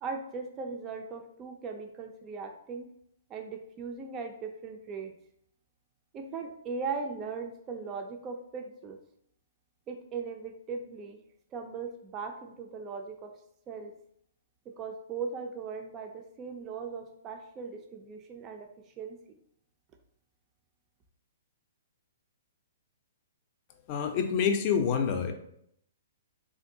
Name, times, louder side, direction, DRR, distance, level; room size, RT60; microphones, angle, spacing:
voice 1, 0.0-2.9 3.3-5.1 6.1-9.0 9.9-11.2 11.5-13.3 13.7-13.9 14.7-18.7 19.0-19.2, right 5 dB, 25° right, 4 dB, 0.3 m, -38 dB
voice 2, 23.9-25.3, left 7 dB, 40° left, 6 dB, 0.5 m, -27 dB
3.6 x 2.5 x 2.6 m, 0.71 s
hypercardioid pair, 125°, 0 cm